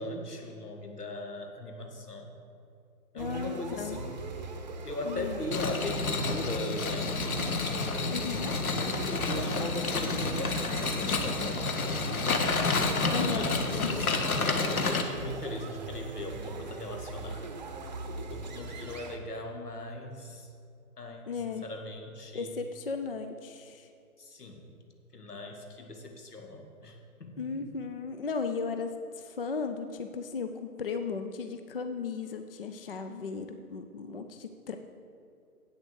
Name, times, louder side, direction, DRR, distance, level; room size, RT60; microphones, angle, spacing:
voice 1, 0.0-2.3 3.1-4.2 4.8-7.1 7.6-8.3 8.6-12.2 13.0-17.5 18.3-20.5 21.0-21.3 21.6-22.5 24.2-24.6 25.1-27.5, left 1 dB, 85° left, 3 dB, 2.1 m, -39 dB
voice 2, 3.2-4.0 5.0-5.4 8.1-8.5 13.1-13.5 13.8-14.1 21.3-21.6 22.3-23.9 27.4-34.8, left 5 dB, 40° left, 7 dB, 0.5 m, -36 dB
sound 1, 3.2-19.2, right 3 dB, 30° right, 0.7 m, -40 dB
sound 2, 5.5-15.0, left 3 dB, 65° left, 1.3 m, -30 dB
8.4 x 7.2 x 7.9 m, 2.4 s
figure-of-eight pair, 145°, 45 cm